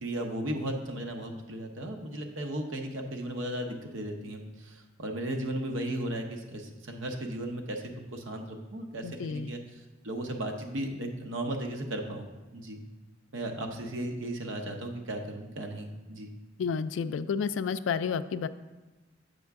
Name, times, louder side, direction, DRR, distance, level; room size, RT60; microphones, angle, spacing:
voice 1, 0.0-12.3 12.5-12.8 13.3-16.3, right 1 dB, 80° right, 4 dB, 0.8 m, -36 dB
voice 2, 9.0-9.5 16.6-18.5, left 6 dB, 75° left, 13 dB, 0.3 m, -31 dB
7.4 x 5.3 x 3.5 m, 1.1 s
head